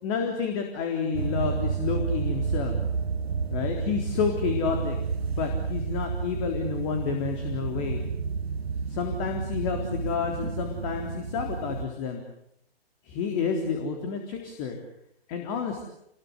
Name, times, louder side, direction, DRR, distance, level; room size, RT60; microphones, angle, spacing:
voice 1, 0.0-2.8 3.5-5.0 5.3-8.0 8.9-12.2 13.0-14.8 15.3-15.9, left 5 dB, 35° left, 3 dB, 3.8 m, -30 dB
sound 1, 1.1-11.9, right 5 dB, 80° right, 2.4 m, -31 dB
28.0 x 21.5 x 8.2 m, 0.77 s
figure-of-eight pair, 130°, 31 cm